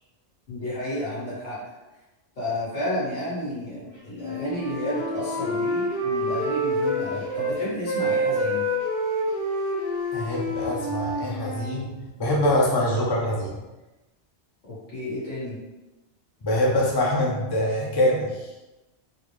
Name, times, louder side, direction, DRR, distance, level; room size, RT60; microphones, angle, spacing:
voice 1, 0.5-1.6 2.4-8.6 14.7-15.6, left 1 dB, 75° left, -9 dB, 1.9 m, -31 dB
Wind instrument woodwind instrument, 4.1-7.5 7.8-11.7, equal, 50° left, 1.0 m, -27 dB
voice 2, 10.1-13.7 16.4-18.5, left 1 dB, 30° left, -3 dB, 0.4 m, -24 dB
4.0 x 2.1 x 3.1 m, 1.1 s
omnidirectional pair, 1.3 m